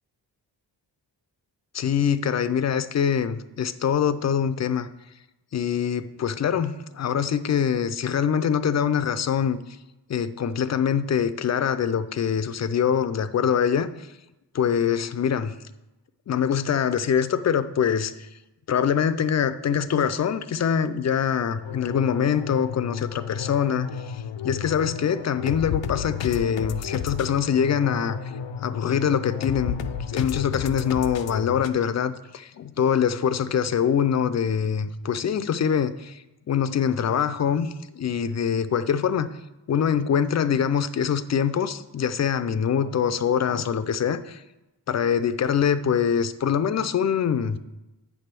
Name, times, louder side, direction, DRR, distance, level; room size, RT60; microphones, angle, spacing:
voice 1, 1.7-4.9 5.5-9.6 10.1-14.1 14.5-15.5 16.3-18.3 18.7-28.2 28.6-29.8 30.1-39.3 39.7-44.4 44.9-47.6, left 8 dB, 40° left, 12 dB, 0.4 m, -24 dB
sound 1, 21.5-31.7, left 8 dB, 85° left, 0.6 m, -32 dB
8.7 x 3.4 x 6.0 m, 0.98 s
cardioid pair, 75°, 43 cm